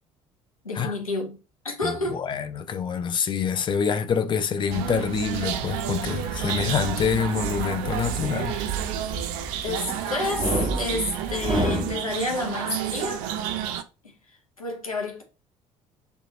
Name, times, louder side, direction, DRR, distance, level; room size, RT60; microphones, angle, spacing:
voice 1, 0.6-1.4 1.6-2.2 9.6-13.3 14.0-15.2, left 3 dB, 85° left, 0.5 m, -30 dB
voice 2, 1.8-8.6, left 7 dB, 25° left, 0.4 m, -26 dB
sound 1, 4.7-13.8, right 11 dB, 55° right, 0.4 m, -30 dB
sound 2, 5.3-12.0, right 1 dB, 30° right, 1.1 m, -32 dB
2.8 x 2.2 x 2.7 m
figure-of-eight pair, 55°, 18 cm